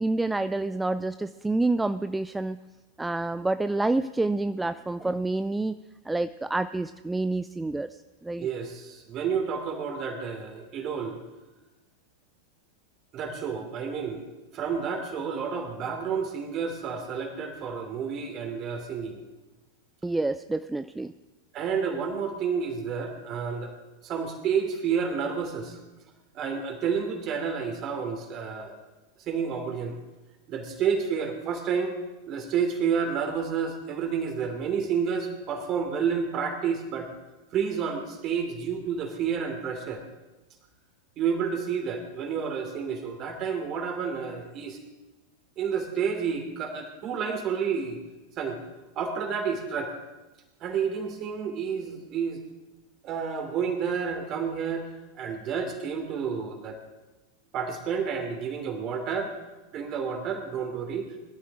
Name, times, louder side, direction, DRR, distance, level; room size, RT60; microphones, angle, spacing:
voice 1, 0.0-2.6 3.0-5.8 6.1-8.5 20.0-21.1, right 2 dB, 5° right, 13 dB, 0.4 m, -28 dB
voice 2, 8.4-11.2 13.1-14.3 14.5-19.2 21.5-23.7 24.0-25.8 26.3-28.7 29.2-30.0 30.5-32.0 32.3-37.1 37.5-40.0 41.2-44.8 45.6-48.0 48.4-48.6 48.9-49.9 50.6-52.4 53.0-54.9 55.2-56.8 57.5-59.4 59.7-61.2, right 6 dB, 35° right, 5 dB, 3.0 m, -30 dB
22.0 x 12.5 x 3.7 m, 1.1 s
figure-of-eight pair, 90°, 0 cm